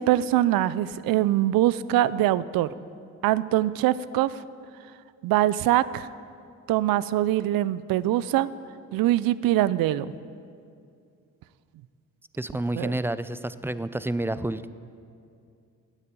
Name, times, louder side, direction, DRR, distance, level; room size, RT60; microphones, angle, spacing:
voice 1, 0.0-2.7 3.2-4.3 5.2-6.1 6.7-8.5 8.9-10.1 12.8-12.9, right 14 dB, 75° right, 18 dB, 0.5 m, -23 dB
voice 2, 12.4-14.7, right 1 dB, 5° right, 14 dB, 0.4 m, -29 dB
9.0 x 8.7 x 8.5 m, 2.3 s
supercardioid pair, 60°, 35 cm